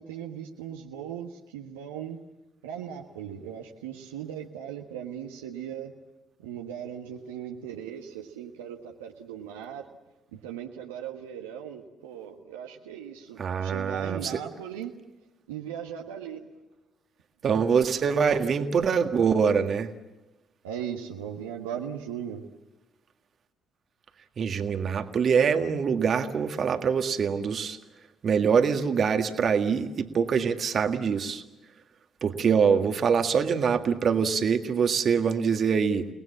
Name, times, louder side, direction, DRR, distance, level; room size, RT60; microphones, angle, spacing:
voice 1, 0.0-2.2 2.6-5.9 6.4-9.9 10.3-14.9 15.5-16.5 20.6-22.4, right 9 dB, 80° right, 2 dB, 1.4 m, -38 dB
voice 2, 13.4-14.4 17.4-19.9 24.4-27.8 28.2-31.4 32.2-36.1, right 6 dB, 50° right, 7 dB, 1.7 m, -24 dB
30.0 x 19.0 x 7.4 m, 1.1 s
hypercardioid pair, 45°, 0 cm